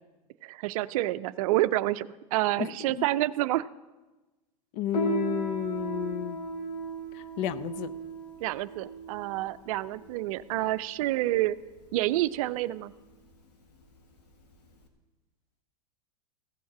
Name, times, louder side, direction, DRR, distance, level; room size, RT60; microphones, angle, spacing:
voice 1, 0.4-3.7 8.4-11.6 11.9-12.9, right 16 dB, 60° right, 14 dB, 0.5 m, -28 dB
voice 2, 2.6-3.0 4.7-6.4 7.1-7.9, left 11 dB, 50° left, 16 dB, 0.6 m, -32 dB
Piano, 4.9-14.9, right 3 dB, 80° left, 1.8 m, -37 dB
15.5 x 7.1 x 6.0 m, 1.1 s
hypercardioid pair, 105°, 20 cm